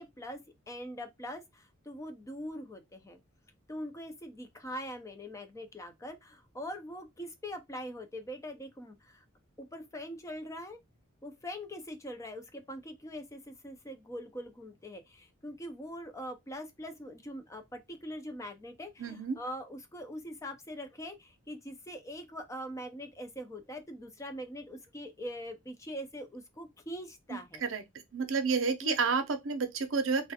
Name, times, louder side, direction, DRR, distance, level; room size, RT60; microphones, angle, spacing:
voice 1, 0.0-3.2 3.7-9.2 9.6-10.8 11.2-27.6 28.8-28.9, equal, 15° left, 0.4 m, -43 dB
voice 2, 19.0-19.4 27.3-27.8 28.1-30.3, right 4 dB, 70° right, 0.6 m, -30 dB
3.2 x 2.4 x 2.7 m
head